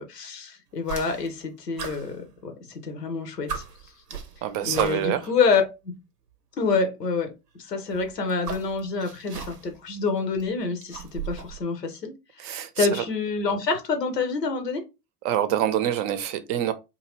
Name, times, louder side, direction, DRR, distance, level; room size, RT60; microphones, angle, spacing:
voice 1, 0.0-2.2 2.4-3.6 4.6-5.6 6.6-7.3 7.5-12.1 12.4-14.8, left 4 dB, 90° left, 0.8 m, -27 dB
sound 1, 0.8-1.4 1.8-2.8 3.1-3.2 3.5-5.3 6.3-6.4 7.8-9.8 10.2-11.6, right 7 dB, 90° right, 0.7 m, -37 dB
voice 2, 4.4-5.2 12.4-13.0 15.2-16.7, right 11 dB, 45° right, 0.5 m, -26 dB
2.8 x 2.6 x 2.9 m
figure-of-eight pair, 75°, 47 cm